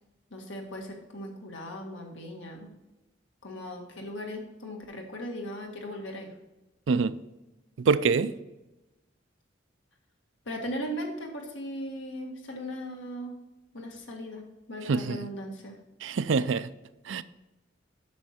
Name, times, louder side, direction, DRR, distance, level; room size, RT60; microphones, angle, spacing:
voice 1, 0.3-2.7 3.4-6.3 10.4-13.3 13.7-15.7, equal, 85° left, 1.7 m, -38 dB
voice 2, 7.8-8.3 14.9-15.2 16.0-16.7 17.1-17.2, right 5 dB, 85° right, 0.4 m, -25 dB
8.2 x 6.3 x 4.3 m
head